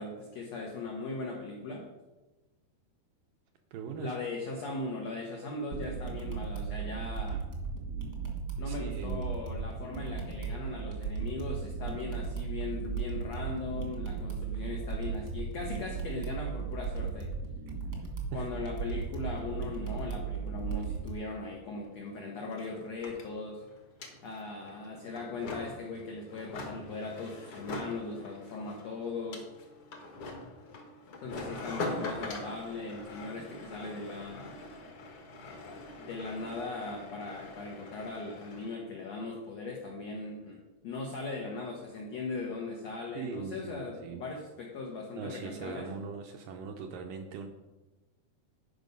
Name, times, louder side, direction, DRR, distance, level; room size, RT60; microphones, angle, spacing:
voice 1, 0.0-1.9 4.0-7.4 8.6-17.3 18.3-23.6 24.2-29.5 31.2-34.6 36.0-45.9, left 3 dB, 80° left, 0 dB, 1.5 m, -39 dB
voice 2, 3.7-4.2 8.6-9.3 18.3-18.5 43.1-44.2 45.2-47.5, right 6 dB, 80° right, 4 dB, 2.0 m, -40 dB
sound 1, 5.7-21.1, right 6 dB, 55° right, 1.2 m, -36 dB
sound 2, 21.8-21.9 22.1-38.7, left 2 dB, 60° left, 1.5 m, -43 dB
11.5 x 5.4 x 5.3 m, 1.1 s
omnidirectional pair, 4.7 m